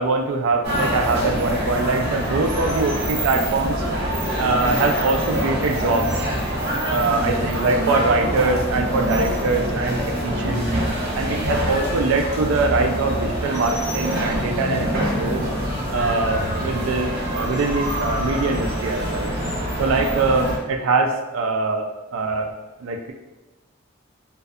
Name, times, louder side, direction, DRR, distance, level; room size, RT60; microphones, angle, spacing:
voice 1, 0.0-3.8 4.4-6.1 6.9-10.7 11.2-15.4 15.9-19.3 19.8-21.8 22.1-22.5 22.8-23.1, right 3 dB, 85° right, 3 dB, 0.3 m, -23 dB
sound 1, 0.6-20.6, equal, 55° right, 0.8 m, -25 dB
2.5 x 2.3 x 2.3 m, 1.1 s
head